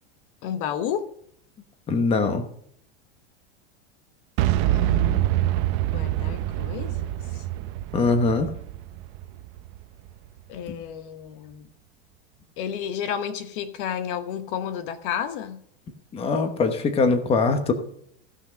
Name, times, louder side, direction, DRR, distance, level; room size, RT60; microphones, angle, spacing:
voice 1, 0.4-1.0 4.6-5.3 5.9-7.4 10.5-11.7 12.6-15.6, left 9 dB, 55° left, 10 dB, 1.1 m, -31 dB
voice 2, 1.9-2.5 7.9-8.5 10.7-10.8 16.1-17.7, left 4 dB, 20° left, 7 dB, 1.1 m, -22 dB
Boom, 4.4-10.3, right 14 dB, 45° right, 0.7 m, -25 dB
16.0 x 6.0 x 5.1 m, 0.68 s
supercardioid pair, 155°, 32 cm